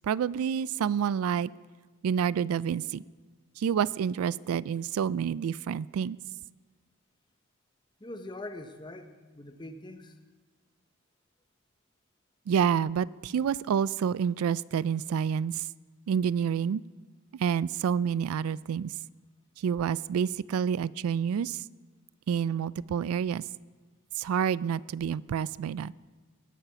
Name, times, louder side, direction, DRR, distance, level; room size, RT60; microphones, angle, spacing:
voice 1, 0.0-1.5 2.0-3.0 3.6-6.2 12.5-15.7 16.1-16.8 17.3-18.9 19.6-21.6 22.3-23.4 24.2-25.9, right 7 dB, 90° right, 20 dB, 0.3 m, -28 dB
voice 2, 8.0-10.1, left 2 dB, 20° left, 6 dB, 0.9 m, -43 dB
19.5 x 8.9 x 5.9 m, 1.4 s
head